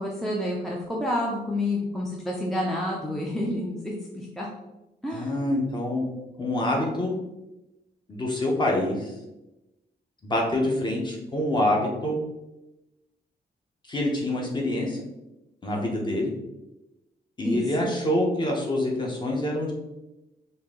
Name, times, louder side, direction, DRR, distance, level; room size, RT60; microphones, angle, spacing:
voice 1, 0.0-4.5 5.0-5.3 17.4-17.9, left 1 dB, ahead, -3 dB, 0.5 m, -29 dB
voice 2, 5.1-6.0 6.4-7.1 8.1-9.1 10.2-12.2 13.8-15.0 15.6-16.3 17.4-19.7, left 1 dB, 25° left, -1 dB, 1.0 m, -26 dB
4.4 x 2.7 x 3.7 m, 0.96 s
wide cardioid pair, 160°, 18 cm